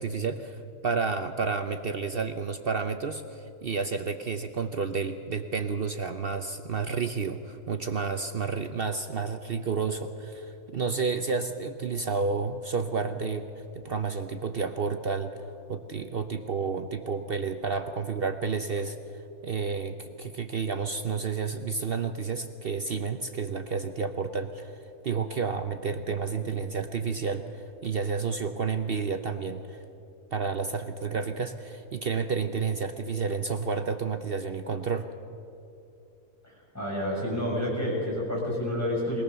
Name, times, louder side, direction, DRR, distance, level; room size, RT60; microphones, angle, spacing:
voice 1, 0.0-15.3 15.7-29.8 30.3-35.1, right 5 dB, 50° right, 8 dB, 0.8 m, -31 dB
voice 2, 36.7-39.2, left 1 dB, 10° left, -6 dB, 7.1 m, -29 dB
22.0 x 18.0 x 6.8 m, 2.8 s
omnidirectional pair, 1.6 m